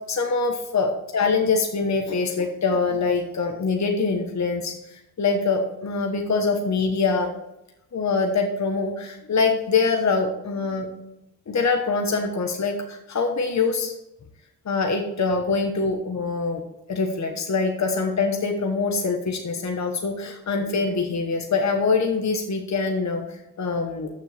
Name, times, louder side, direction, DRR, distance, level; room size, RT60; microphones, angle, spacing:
voice 1, 0.1-7.3 7.9-10.9 11.5-13.9 14.6-16.6 16.9-24.1, left 4 dB, 50° left, 3 dB, 1.2 m, -24 dB
13.5 x 6.7 x 3.4 m, 0.87 s
wide cardioid pair, 180°, 37 cm